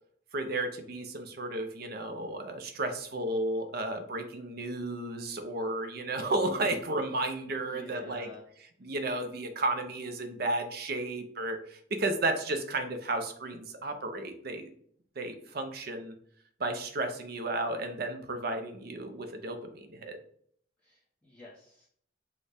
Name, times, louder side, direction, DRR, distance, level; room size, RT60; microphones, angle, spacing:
voice 1, 0.3-8.3 8.8-14.7 15.2-16.1 16.6-20.2, right 2 dB, 55° right, 7 dB, 0.6 m, -33 dB
voice 2, 7.5-8.4 20.8-21.9, left 3 dB, 10° left, -9 dB, 1.1 m, -49 dB
6.3 x 2.3 x 3.4 m, 0.64 s
head